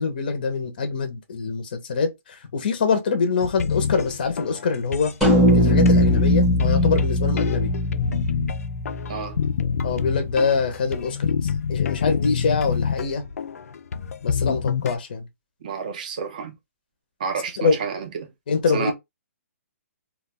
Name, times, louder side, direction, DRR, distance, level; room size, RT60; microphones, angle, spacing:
voice 1, 0.0-5.1 5.5-7.7 9.8-13.2 14.2-15.3 17.6-17.8 18.5-18.9, left 5 dB, 35° left, 0.5 m, -24 dB
sound 1, 3.4-15.0, left 6 dB, 85° left, 0.4 m, -27 dB
sound 2, 5.2-9.7, left 1 dB, ahead, 0.8 m, -20 dB
voice 2, 15.6-16.6 17.2-18.3 18.7-18.9, right 5 dB, 30° right, 0.5 m, -30 dB
2.3 x 2.1 x 3.4 m
hypercardioid pair, 180°, 8 cm